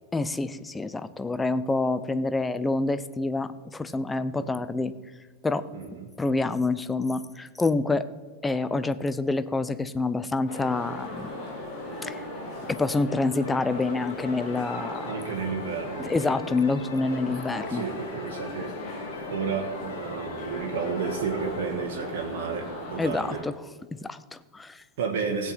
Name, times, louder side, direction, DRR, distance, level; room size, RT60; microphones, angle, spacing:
voice 1, 0.1-4.9 5.4-5.6 6.2-8.1 8.4-11.3 12.0-12.2 12.7-15.1 16.0-17.8 23.0-23.6 23.9-24.8, left 3 dB, 10° left, 13 dB, 0.5 m, -27 dB
voice 2, 5.7-6.1 15.1-16.1 17.7-18.7 19.3-23.4 25.0-25.5, right 5 dB, 50° right, 1 dB, 1.5 m, -32 dB
sound 1, 10.5-23.4, left 1 dB, 35° left, 3.5 m, -37 dB
sound 2, 13.4-21.6, left 5 dB, 65° left, 0.9 m, -45 dB
16.5 x 8.0 x 4.2 m, 1.4 s
figure-of-eight pair, 90°, 0 cm